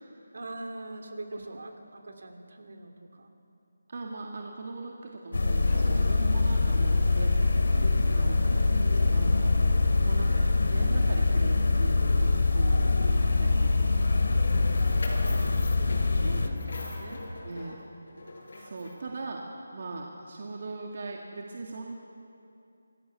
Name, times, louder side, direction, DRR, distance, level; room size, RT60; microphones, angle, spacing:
voice 1, 0.3-3.3 8.4-8.7 10.2-10.7 13.4-14.3 16.1-17.2, right 2 dB, 60° right, 6 dB, 2.8 m, -43 dB
voice 2, 3.9-7.9 8.1-9.5 10.0-12.9 13.3-13.9 17.4-17.8 18.5-19.5 19.7-21.9, right 3 dB, 40° right, 0 dB, 2.1 m, -40 dB
sound 1, 5.3-16.5, left 3 dB, 75° left, 2.6 m, -24 dB
Musical instrument, 5.6-17.4, left 6 dB, 35° left, 3.3 m, -33 dB
sound 2, 14.5-19.2, left 2 dB, 55° left, 5.7 m, -43 dB
26.5 x 20.0 x 7.0 m, 2.7 s
figure-of-eight pair, 175°, 0 cm